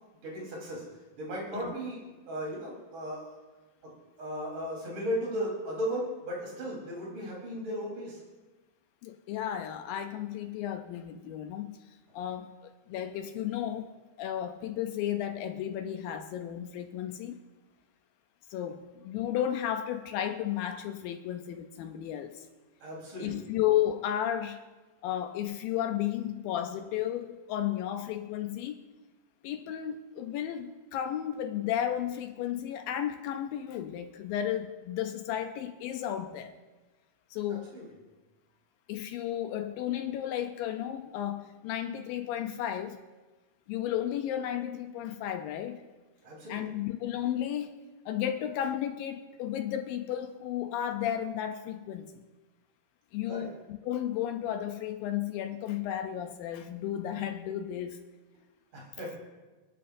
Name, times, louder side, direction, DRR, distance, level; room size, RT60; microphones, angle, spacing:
voice 1, 0.2-0.8 1.2-3.4 4.2-8.2 22.8-23.4 37.5-37.8 46.2-46.6 53.3-53.5 58.7-59.2, equal, 55° right, -4 dB, 5.1 m, -36 dB
voice 2, 9.0-13.9 14.2-17.4 18.5-22.5 23.2-24.6 25.0-28.8 29.4-36.5 37.3-37.8 38.9-43.0 43.7-45.8 46.5-47.7 48.1-52.2 53.1-58.0, left 11 dB, 80° left, 7 dB, 2.2 m, -33 dB
27.5 x 10.5 x 2.6 m, 1.2 s
omnidirectional pair, 4.3 m